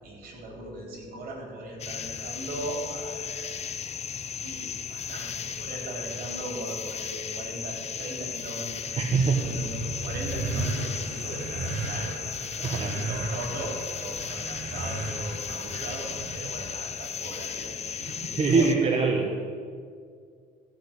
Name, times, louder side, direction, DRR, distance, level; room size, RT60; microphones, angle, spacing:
voice 1, 0.0-3.7 4.4-12.1 12.6-19.0, right 1 dB, 60° right, 1 dB, 4.0 m, -38 dB
sound 1, 1.8-18.7, left 7 dB, 40° left, 0.8 m, -36 dB
sound 2, 8.8-16.5, right 3 dB, 85° right, 2.2 m, -35 dB
voice 2, 9.0-9.4 12.6-12.9 18.4-19.3, right 4 dB, 35° right, 1 dB, 1.2 m, -23 dB
14.5 x 6.0 x 9.1 m, 2.1 s
cardioid pair, 110°, 17 cm